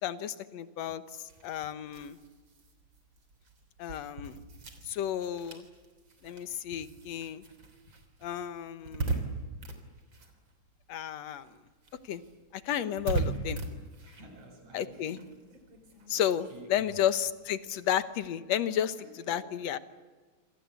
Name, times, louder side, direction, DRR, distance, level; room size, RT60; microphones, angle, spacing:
voice 1, 0.0-2.2 3.8-4.4 4.9-5.6 6.2-7.4 8.2-9.2 10.9-11.5 12.1-12.2 12.5-13.6 14.7-15.2 16.1-19.0 19.3-19.8, left 10 dB, 65° left, 12 dB, 2.3 m, -32 dB
sound 1, 1.1-11.0 11.3-18.3, right 3 dB, 40° right, 4.0 m, -40 dB
voice 2, 14.0-15.3 16.5-16.8 19.0-19.5, right 1 dB, 70° right, 2 dB, 8.5 m, -51 dB
27.5 x 26.0 x 8.3 m, 1.4 s
omnidirectional pair, 3.3 m